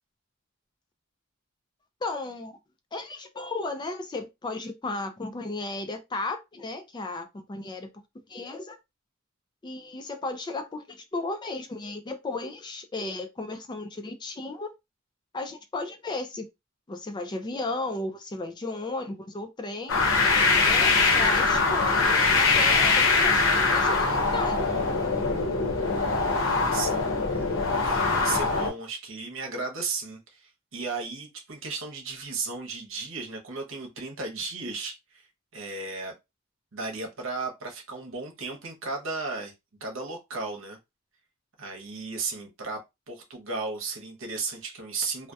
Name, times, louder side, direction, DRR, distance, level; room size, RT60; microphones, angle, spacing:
voice 1, 2.0-2.5 2.9-7.9 8.3-8.8 9.6-14.7 15.3-16.4 16.9-20.0 20.6-24.7, left 3 dB, 20° left, 0.3 m, -34 dB
sound 1, 19.9-28.7, left 3 dB, 80° left, 0.7 m, -23 dB
voice 2, 26.3-27.5 27.8-35.3 35.5-36.1 36.7-39.5 39.8-40.8 41.6-42.8 43.1-45.3, right 4 dB, 70° right, 0.9 m, -35 dB
2.7 x 2.0 x 2.3 m
head